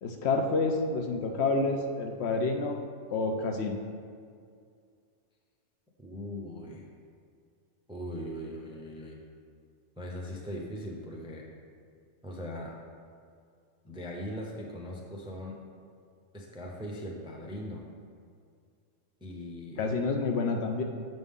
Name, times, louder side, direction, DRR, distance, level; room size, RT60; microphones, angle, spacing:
voice 1, 0.0-2.8 3.1-3.8 19.8-20.8, left 3 dB, 65° left, 3 dB, 0.8 m, -28 dB
voice 2, 6.0-6.9 7.9-9.2 10.0-11.5 12.2-12.8 13.8-15.6 16.3-17.8 19.2-19.8, equal, 5° right, -1 dB, 0.4 m, -40 dB
7.7 x 5.4 x 3.6 m, 2.2 s
omnidirectional pair, 1.3 m